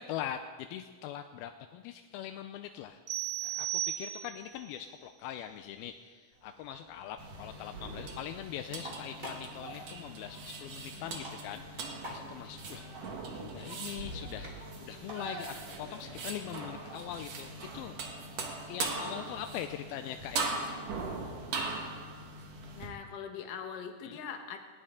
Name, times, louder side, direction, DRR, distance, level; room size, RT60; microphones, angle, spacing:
voice 1, 0.0-3.0 3.4-12.9 13.3-18.0 18.6-20.5 24.0-24.2, left 10 dB, 80° left, 7 dB, 2.2 m, -42 dB
sound 1, 3.1-4.6, right 13 dB, 70° right, 3.3 m, -35 dB
sound 2, 6.3-17.8, right 1 dB, 20° right, 3.0 m, -50 dB
sound 3, 7.2-22.9, right 3 dB, 55° right, 1.8 m, -40 dB
voice 2, 22.8-24.6, left 7 dB, 60° left, 4 dB, 2.6 m, -41 dB
19.5 x 19.0 x 3.8 m, 1.5 s
omnidirectional pair, 4.9 m